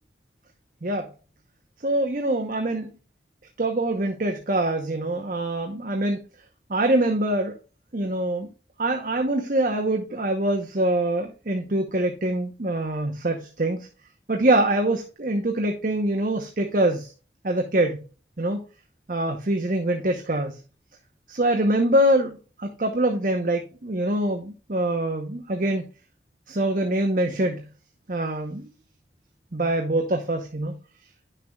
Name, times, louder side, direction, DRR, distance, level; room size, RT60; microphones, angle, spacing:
voice 1, 1.8-2.9 3.6-6.2 6.7-7.6 7.9-8.5 8.8-13.9 14.3-17.1 17.4-18.0 18.4-18.6 19.1-20.6 21.3-25.9 26.5-27.6 28.1-28.7 29.5-30.8, right 1 dB, 50° right, 3 dB, 0.9 m, -24 dB
10.0 x 6.7 x 2.3 m, 0.34 s
head